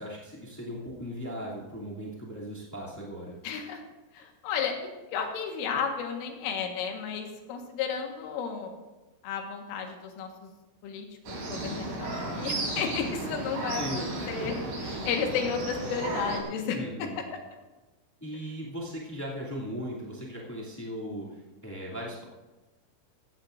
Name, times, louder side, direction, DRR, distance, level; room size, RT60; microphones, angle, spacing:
voice 1, 0.0-3.3 13.7-14.7 16.7-17.2 18.2-22.2, equal, 20° left, -6 dB, 0.4 m, -38 dB
voice 2, 3.4-3.8 4.1-4.8 5.1-8.7 9.2-10.5 10.8-14.6 15.0-17.2, left 6 dB, 80° left, 2 dB, 4.2 m, -33 dB
sound 1, 11.3-16.4, right 2 dB, 70° right, 5.7 m, -34 dB
17.0 x 15.0 x 2.6 m, 1.1 s
omnidirectional pair, 5.7 m